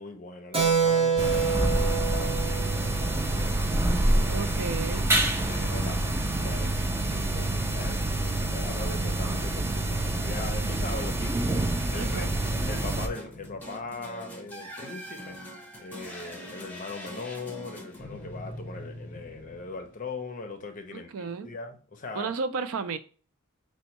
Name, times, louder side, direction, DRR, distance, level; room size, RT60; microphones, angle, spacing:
voice 1, 0.0-3.5 3.8-4.7 5.5-12.3 12.7-15.4 15.8-22.3, left 3 dB, 40° left, 0.5 m, -40 dB
Keyboard (musical), 0.5-4.6, right 6 dB, 30° right, 0.8 m, -28 dB
sound 1, 1.2-13.1, right 2 dB, 10° right, 0.3 m, -27 dB
voice 2, 4.3-5.1 12.0-12.3 20.9-21.5 22.1-23.0, right 4 dB, 85° right, 0.4 m, -33 dB
sound 2, 12.0-20.2, equal, 10° left, 0.8 m, -42 dB
4.3 x 2.2 x 2.9 m
head